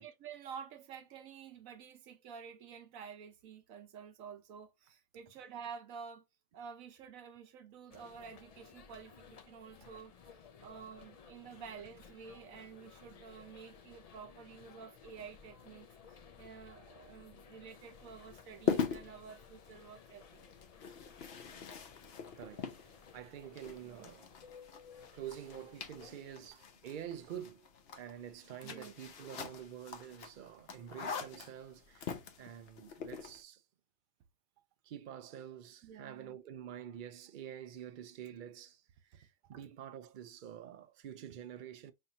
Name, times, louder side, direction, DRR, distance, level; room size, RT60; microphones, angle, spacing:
voice 1, 0.0-6.2 6.5-10.1 10.6-20.6 23.8-24.1 28.6-28.9 35.8-36.4 39.1-39.2, right 6 dB, 85° right, 1.2 m, -50 dB
sound 1, 7.9-26.5, left 6 dB, 75° left, 0.3 m, -57 dB
sound 2, 17.7-33.4, left 6 dB, 55° left, 0.9 m, -43 dB
voice 2, 22.4-22.9 23.1-24.3 25.1-27.7 28.0-33.6 34.8-41.9, right 10 dB, 60° right, 0.5 m, -48 dB
5.6 x 2.7 x 2.8 m
omnidirectional pair, 1.4 m